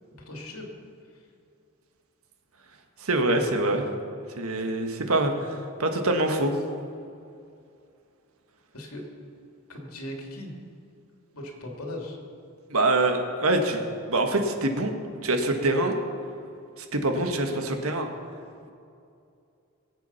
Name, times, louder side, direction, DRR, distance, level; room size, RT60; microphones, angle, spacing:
voice 1, 0.3-0.7 8.7-9.1 9.7-10.5 11.3-12.2, left 1 dB, 85° left, 1 dB, 2.7 m, -38 dB
voice 2, 3.0-3.8 4.4-6.6 12.7-13.8 14.1-14.9 15.2-15.9 16.8-18.1, right 2 dB, 80° right, 5 dB, 1.5 m, -25 dB
21.0 x 8.3 x 5.8 m, 2.5 s
head